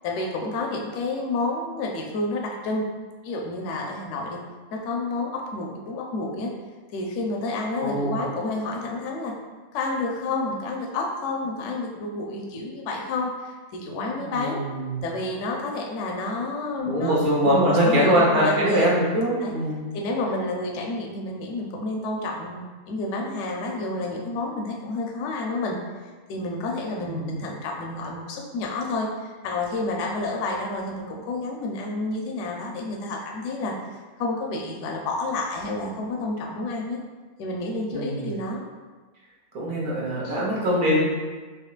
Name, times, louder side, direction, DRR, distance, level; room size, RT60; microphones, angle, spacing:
voice 1, 0.0-2.9 3.2-4.4 4.7-6.5 6.9-9.3 9.7-14.6 15.0-17.2 17.4-18.9 19.4-19.5 19.9-25.8 26.3-29.1 29.4-33.8 34.2-37.0 37.4-38.6 40.2-40.4, left 2 dB, 65° left, 0 dB, 0.8 m, -29 dB
voice 2, 7.8-8.2 14.2-15.0 16.8-19.8 27.0-27.3 37.9-38.3 39.5-41.0, equal, 85° right, -6 dB, 1.6 m, -22 dB
4.4 x 2.9 x 2.4 m, 1.3 s
omnidirectional pair, 1.5 m